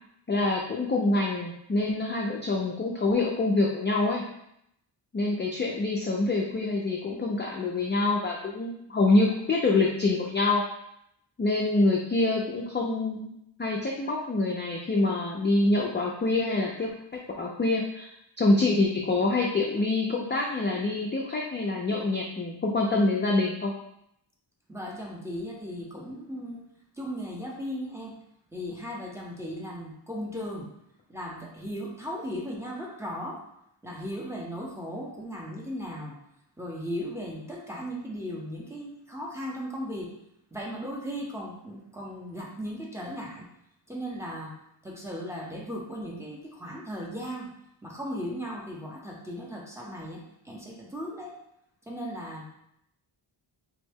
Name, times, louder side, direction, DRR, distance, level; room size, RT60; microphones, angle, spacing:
voice 1, 0.3-4.2 5.1-10.6 11.4-18.1 18.4-23.7, left 2 dB, 25° left, -1 dB, 0.3 m, -26 dB
voice 2, 24.7-26.6 27.0-28.2 28.5-30.7 31.1-33.4 33.8-36.1 36.6-40.1 40.5-43.5 43.9-44.5 44.8-47.5 47.8-51.3 51.9-52.4, equal, 5° right, -3 dB, 0.7 m, -37 dB
3.5 x 2.1 x 3.4 m, 0.77 s
wide cardioid pair, 90°, 48 cm